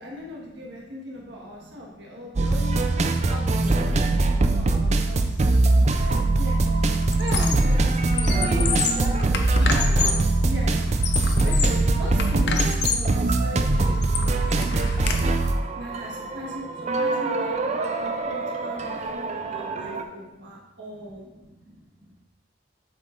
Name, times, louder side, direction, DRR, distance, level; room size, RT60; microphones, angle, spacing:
voice 1, 0.0-3.9 4.2-5.6 6.4-6.6 7.2-9.0 10.4-10.8 11.4-15.3 15.7-17.7 18.0-21.3, left 1 dB, 75° right, -3 dB, 1.5 m, -39 dB
voice 2, 1.3-2.5 8.3-10.4 16.1-16.5 17.7-18.2 18.5-18.6 18.8-19.2 19.6-19.9 20.2-20.4 21.2-22.2, right 1 dB, 5° right, -8 dB, 1.9 m, -41 dB
sound 1, 2.4-20.0, right 2 dB, 40° right, 0.4 m, -22 dB
Squeak, 5.9-6.2 6.5-7.8 8.1-10.3 10.8-11.8 12.2-13.1 13.6-15.2, left 6 dB, 65° left, 0.6 m, -29 dB
8.3 x 5.7 x 2.6 m, 1.0 s
head